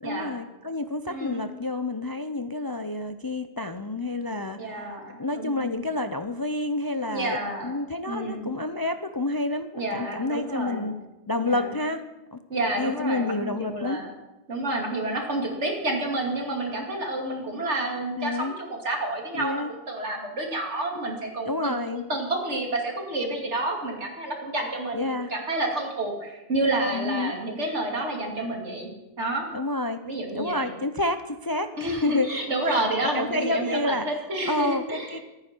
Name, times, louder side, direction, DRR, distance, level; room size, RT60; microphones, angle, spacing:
voice 1, 0.0-4.9 5.2-7.4 7.6-10.9 11.3-12.0 12.3-12.4 12.8-14.0 18.2-18.5 19.3-19.7 21.5-22.0 24.9-25.3 26.9-27.3 29.5-30.0 30.3-32.3 33.1-35.2, left 2 dB, 30° left, 9 dB, 0.4 m, -29 dB
voice 2, 1.1-1.5 4.6-5.8 7.1-7.7 8.1-8.5 9.8-10.9 11.4-11.7 12.5-14.1 14.5-28.9 29.2-29.5 30.0-30.7 31.8-35.1, right 2 dB, 80° right, 0 dB, 3.0 m, -29 dB
24.5 x 9.7 x 4.5 m, 1.0 s
omnidirectional pair, 1.2 m